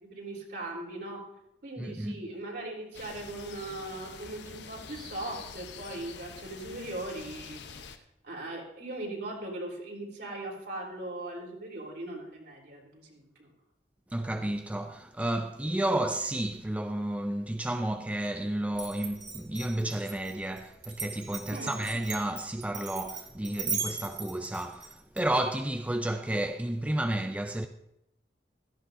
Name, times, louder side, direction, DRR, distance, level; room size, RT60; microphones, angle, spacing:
voice 1, 0.1-1.2 1.6-7.6 8.2-13.5 21.5-21.8, right 2 dB, 65° right, 3.8 m, -39 dB
voice 2, 1.8-2.2 14.1-27.7, right 1 dB, 10° right, 0.4 m, -31 dB
sound 1, 2.9-8.0, left 5 dB, 80° left, 0.9 m, -46 dB
Glass, 18.7-25.2, right 5 dB, 30° right, 2.5 m, -38 dB
16.5 x 13.5 x 2.7 m
head